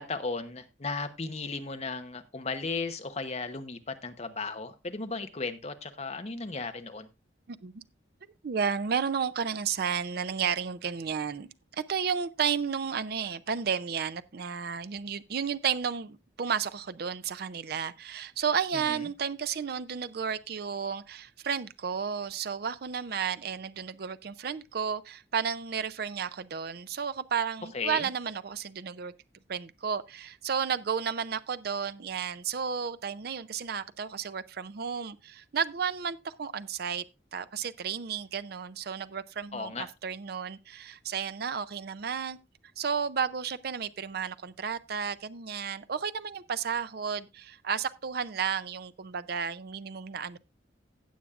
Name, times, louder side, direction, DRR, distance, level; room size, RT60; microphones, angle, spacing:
voice 1, 0.0-7.1 18.7-19.1 27.7-28.1 39.5-39.9, left 4 dB, 35° left, 0.9 m, -35 dB
voice 2, 7.5-7.8 8.4-11.5 11.7-29.1 29.5-37.0 37.3-42.4 42.8-50.4, right 6 dB, 55° right, 0.5 m, -32 dB
16.5 x 7.2 x 2.4 m
head